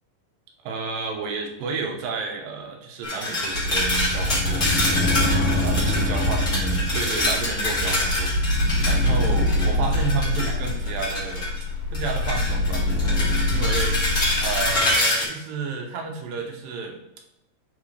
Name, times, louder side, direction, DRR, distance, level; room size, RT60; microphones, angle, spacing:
voice 1, 0.6-5.1 5.6-11.5 11.9-13.0 13.5-14.0 14.4-17.0, right 5 dB, 85° right, 2 dB, 2.8 m, -31 dB
sound 1, 3.0-11.6 11.9-15.2, left 1 dB, 25° left, 2.3 m, -26 dB
sound 2, 3.5-14.8, left 1 dB, 75° left, 4.0 m, -24 dB
10.0 x 4.6 x 3.3 m, 0.85 s
omnidirectional pair, 3.9 m